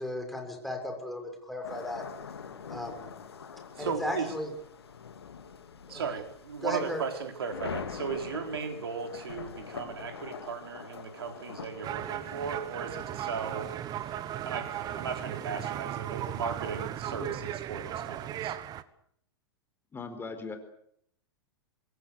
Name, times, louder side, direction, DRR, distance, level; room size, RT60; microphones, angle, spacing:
voice 1, 0.0-2.0 2.7-3.1 3.8-4.5 5.9-6.0 6.6-7.0, left 1 dB, ahead, 2 dB, 6.7 m, -35 dB
sound 1, 1.6-16.9, left 6 dB, 75° left, 2.4 m, -45 dB
voice 2, 3.8-4.3 5.9-13.7 14.4-18.6, right 6 dB, 70° right, 5 dB, 4.5 m, -36 dB
sound 2, 11.8-18.8, right 11 dB, 30° right, 1.4 m, -36 dB
voice 3, 19.9-20.6, left 4 dB, 15° left, 8 dB, 4.4 m, -39 dB
26.0 x 21.5 x 6.7 m, 0.68 s
figure-of-eight pair, 100°, 13 cm